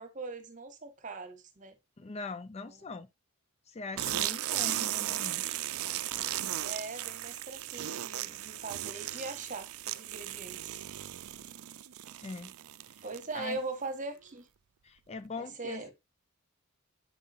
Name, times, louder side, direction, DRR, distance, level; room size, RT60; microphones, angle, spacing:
voice 1, 0.0-1.7 2.6-2.8 4.5-4.9 6.5-10.8 13.0-14.5 15.4-15.9, right 3 dB, 35° right, 1.3 m, -41 dB
voice 2, 2.0-3.1 3.7-5.6 12.2-12.5 13.3-13.6 14.8-15.9, left 3 dB, 30° left, 0.4 m, -41 dB
sound 1, 4.0-13.5, right 13 dB, 80° right, 0.4 m, -36 dB
8.4 x 5.5 x 2.4 m
head